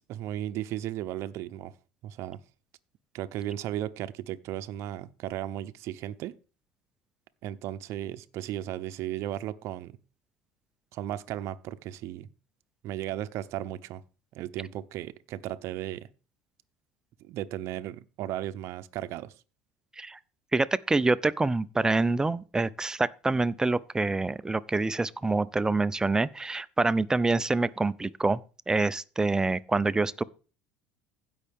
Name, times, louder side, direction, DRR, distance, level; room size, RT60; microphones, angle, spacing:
voice 1, 0.0-1.7 2.0-2.4 3.1-6.3 7.4-10.0 10.9-12.3 12.8-14.0 14.3-16.1 17.2-19.3, right 12 dB, 60° right, 0.7 m, -35 dB
voice 2, 20.5-28.4 28.7-30.2, right 3 dB, 10° right, 0.5 m, -26 dB
15.5 x 5.6 x 3.5 m
supercardioid pair, 100°, 5 cm